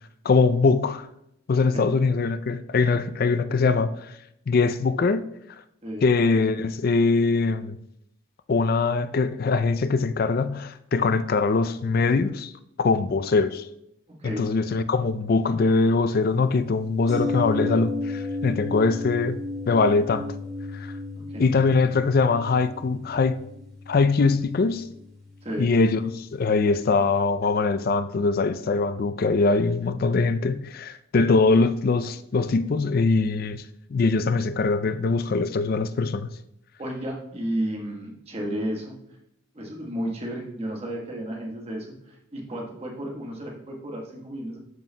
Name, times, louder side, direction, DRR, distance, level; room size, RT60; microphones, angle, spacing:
voice 1, 0.2-1.1 1.5-4.2 4.5-5.2 6.0-7.8 8.5-12.5 12.8-13.7 14.2-19.3 19.7-20.3 20.7-20.9 21.4-23.4 23.9-24.9 25.6-33.6 33.9-36.3, left 4 dB, 45° left, 0.4 m, -22 dB
sound 1, 17.1-26.9 27.2-27.3, left 2 dB, ahead, 2.0 m, -34 dB
voice 2, 36.8-38.9 39.5-44.6, right 1 dB, 30° right, 1.2 m, -32 dB
12.0 x 5.4 x 2.2 m
head